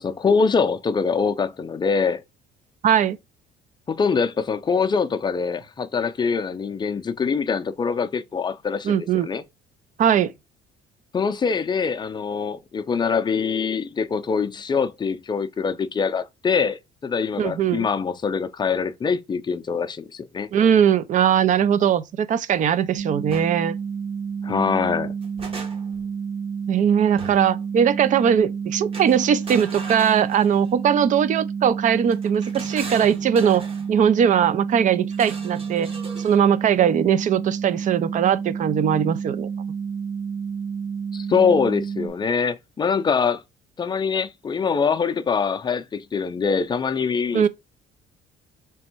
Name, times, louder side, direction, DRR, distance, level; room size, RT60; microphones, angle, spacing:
voice 1, 0.0-2.2 3.9-9.4 11.1-20.5 24.4-25.1 41.1-43.4 43.8-47.5, left 5 dB, 25° left, 0.5 m, -24 dB
voice 2, 2.8-3.2 8.8-9.3 10.0-10.3 17.4-17.9 20.5-23.8 26.7-35.9 36.2-39.5 47.3-47.5, right 8 dB, 50° right, 0.5 m, -20 dB
sound 1, 23.0-42.1, right 6 dB, 80° right, 0.9 m, -30 dB
sound 2, 23.3-23.5 24.9-26.1 27.2-27.6 28.9-30.8 32.1-33.9 35.1-36.4, right 4 dB, 35° right, 1.3 m, -39 dB
3.5 x 3.1 x 4.4 m
cardioid pair, 110°, 17 cm